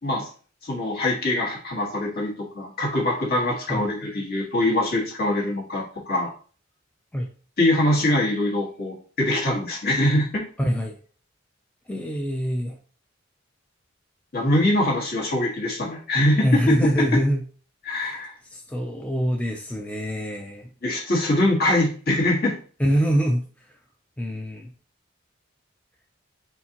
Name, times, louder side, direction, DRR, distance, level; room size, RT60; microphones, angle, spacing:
voice 1, 0.6-6.3 7.6-10.4 14.3-16.5 17.8-18.3 20.8-22.6, left 1 dB, 55° left, -2 dB, 1.6 m, -23 dB
voice 2, 10.6-11.0 11.9-12.8 16.4-17.4 17.9-18.2 18.5-20.7 22.8-23.5 24.2-24.7, equal, 5° left, 1 dB, 0.4 m, -24 dB
4.5 x 3.6 x 2.9 m, 0.41 s
head